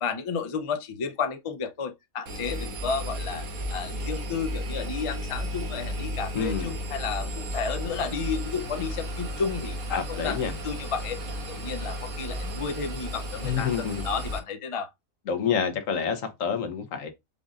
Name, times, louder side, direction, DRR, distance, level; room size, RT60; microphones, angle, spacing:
voice 1, 0.0-3.5 3.7-9.8 10.1-11.2 11.5-14.9, left 5 dB, 45° left, 0.4 m, -32 dB
Engine, 2.3-14.4, equal, 90° right, 1.5 m, -34 dB
voice 2, 6.3-6.8 9.9-10.5 13.4-14.1 15.3-17.1, left 7 dB, 70° left, 1.2 m, -28 dB
5.2 x 2.5 x 3.6 m
omnidirectional pair, 1.4 m